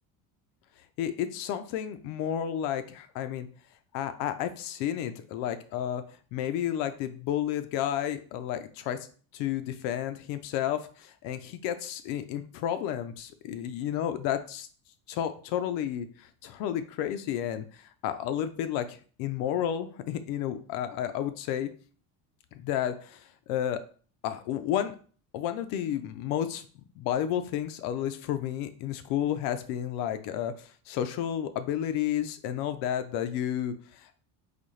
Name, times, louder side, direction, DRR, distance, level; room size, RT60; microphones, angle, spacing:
voice 1, 1.0-3.5 3.9-6.0 6.3-9.0 9.3-14.7 15.1-21.7 22.5-23.1 23.5-23.8 24.2-24.9 25.3-26.6 27.0-30.5 30.9-34.2, left 10 dB, 65° left, 10 dB, 0.5 m, -31 dB
4.0 x 2.7 x 3.1 m, 0.42 s
cardioid pair, 180°, 38 cm